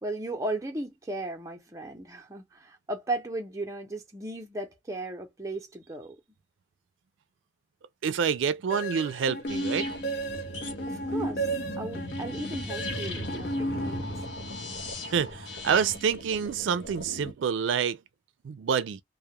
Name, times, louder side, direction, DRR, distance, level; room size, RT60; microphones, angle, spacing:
voice 1, 0.0-6.2 10.9-11.5 11.8-14.2, right 2 dB, 15° right, 0.6 m, -36 dB
voice 2, 8.0-9.9 15.1-18.0 18.4-19.0, right 7 dB, 90° right, 0.4 m, -27 dB
sound 1, 8.7-14.5, right 1 dB, 55° left, 0.5 m, -34 dB
sound 2, 9.5-17.3, left 1 dB, 90° left, 0.9 m, -38 dB
2.2 x 2.1 x 2.8 m
head